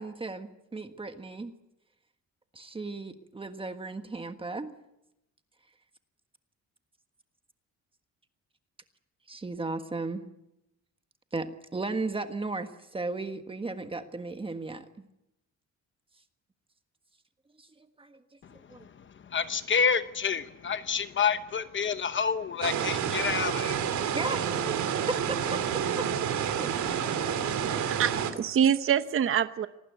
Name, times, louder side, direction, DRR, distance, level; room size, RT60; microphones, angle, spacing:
voice 1, 0.0-1.5 2.5-4.7 9.3-10.2 11.3-15.0 17.6-17.7 18.0-18.2 18.5-18.9 24.1-25.6 26.0-26.1 26.6-27.1 27.4-27.5 27.7-27.8, right 3 dB, 20° right, 1.5 m, -36 dB
voice 2, 19.3-23.8, left 6 dB, 40° left, 0.9 m, -28 dB
sound 1, 22.6-28.3, right 8 dB, 70° right, 2.9 m, -29 dB
voice 3, 27.9-29.7, right 8 dB, 45° right, 1.0 m, -25 dB
26.0 x 19.5 x 9.4 m
cardioid pair, 160°, 30 cm